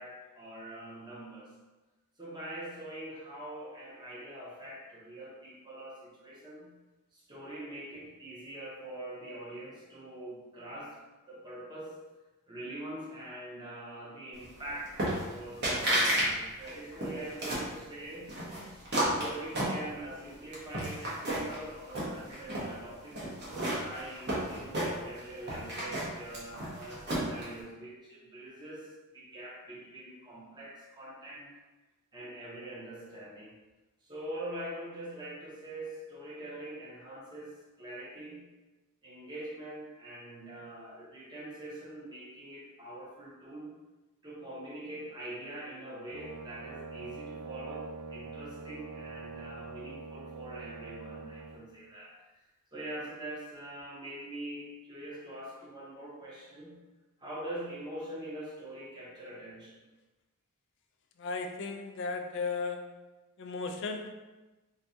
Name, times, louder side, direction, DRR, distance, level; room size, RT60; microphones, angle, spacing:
voice 1, 0.0-1.5 2.2-6.7 7.1-11.0 11.3-12.0 12.5-18.3 18.7-23.2 23.8-31.5 32.1-33.5 34.0-38.4 39.0-43.7 44.2-52.1 52.7-56.8 57.2-59.8, right 1 dB, 20° right, -6 dB, 0.8 m, -44 dB
sound 1, 15.0-15.4 15.6-16.3 16.6-17.7 18.3-20.2 20.5-21.6 21.9-22.7 23.2-25.2 25.5-27.4, right 1 dB, 50° right, 1.0 m, -31 dB
Brass instrument, 46.1-51.6, right 4 dB, 85° right, 0.3 m, -44 dB
voice 2, 61.2-63.0 63.4-64.1, left 4 dB, 55° left, 5 dB, 0.3 m, -35 dB
4.0 x 2.3 x 2.7 m, 1.1 s
head